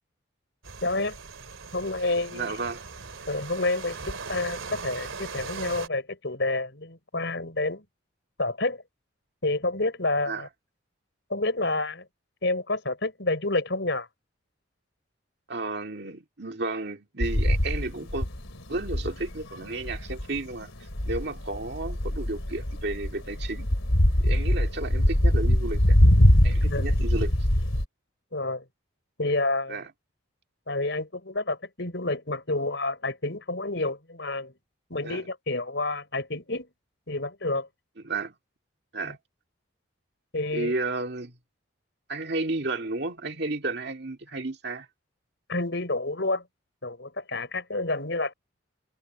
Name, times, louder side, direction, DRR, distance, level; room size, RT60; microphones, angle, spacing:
sound 1, 0.6-5.9, right 4 dB, 85° right, 2.9 m, -39 dB
voice 1, 0.8-1.2 1.7-2.6 3.3-7.8 8.4-8.8 9.4-10.5 11.3-12.1 12.4-14.1 26.7-26.8 28.3-28.7 29.2-29.8 30.7-34.5 34.9-36.7 37.1-37.7 39.0-39.2 40.3-40.7 45.5-46.5 46.8-48.3, left 2 dB, 60° left, 5.2 m, -29 dB
voice 2, 2.3-2.8 10.3-10.5 15.5-18.3 18.7-20.7 21.1-23.7 24.2-26.0 26.4-27.3 29.7-29.9 35.0-35.2 38.0-38.4 38.9-39.2 40.5-41.4 42.1-44.9, right 2 dB, 55° right, 2.2 m, -32 dB
sound 2, 17.2-27.8, left 1 dB, 85° left, 3.3 m, -23 dB
head